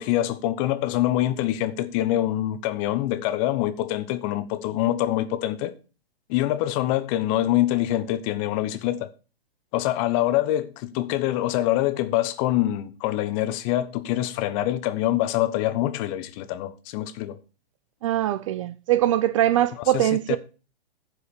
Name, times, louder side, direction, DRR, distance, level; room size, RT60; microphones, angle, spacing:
voice 1, 0.0-5.7 6.3-9.1 9.7-17.4 19.9-20.4, left 14 dB, 35° left, 0.9 m, -25 dB
voice 2, 18.0-20.4, right 13 dB, 35° right, 0.4 m, -22 dB
10.5 x 4.9 x 6.9 m
hypercardioid pair, 130°, 31 cm